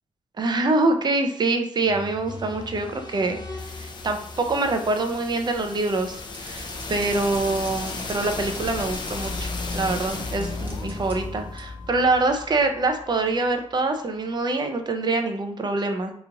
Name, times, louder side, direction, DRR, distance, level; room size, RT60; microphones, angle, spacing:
voice 1, 0.4-3.4 3.8-16.1, right 3 dB, 35° right, 5 dB, 0.6 m, -25 dB
sound 1, 1.8-13.7, left 3 dB, 35° left, 0.5 m, -35 dB
sound 2, 6.3-10.1 10.4-11.1 11.6-11.7 12.3-12.6, right 1 dB, 15° right, 0.9 m, -44 dB
3.0 x 2.4 x 3.9 m, 0.68 s
cardioid pair, 100°, 12 cm